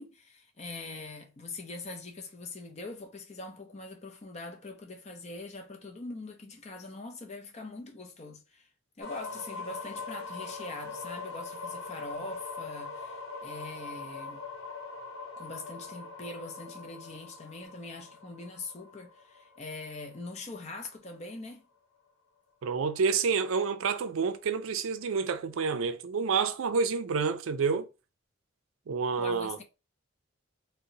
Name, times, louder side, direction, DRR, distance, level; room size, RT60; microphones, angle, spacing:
voice 1, 0.0-8.7 9.0-14.5 15.4-21.7 29.2-29.6, left 3 dB, 30° left, 0.5 m, -43 dB
sound 1, 9.0-20.8, left 4 dB, 80° left, 0.8 m, -42 dB
voice 2, 22.6-27.9 28.9-29.6, right 5 dB, 80° right, 0.4 m, -28 dB
2.7 x 2.1 x 3.8 m
head